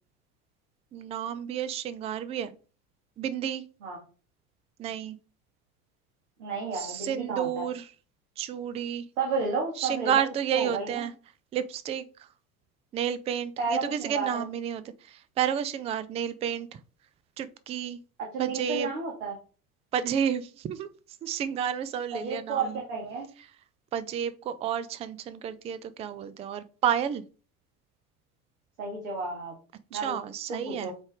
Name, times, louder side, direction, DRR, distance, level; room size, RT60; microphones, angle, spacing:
voice 1, 0.9-2.5 3.2-3.6 4.8-5.2 6.7-7.9 8.4-9.1 9.8-11.1 11.5-12.0 12.9-16.7 17.4-18.0 18.4-18.9 19.9-20.9 21.2-22.8 23.9-27.2 29.9-30.9, right 9 dB, 15° right, 15 dB, 0.4 m, -31 dB
voice 2, 6.4-7.6 9.2-10.2 10.5-11.0 13.6-14.4 18.2-19.3 22.1-23.3 28.8-29.5 29.9-30.2 30.5-30.9, right 4 dB, 60° right, -1 dB, 2.0 m, -32 dB
8.0 x 3.3 x 3.5 m, 0.36 s
figure-of-eight pair, 70°, 44 cm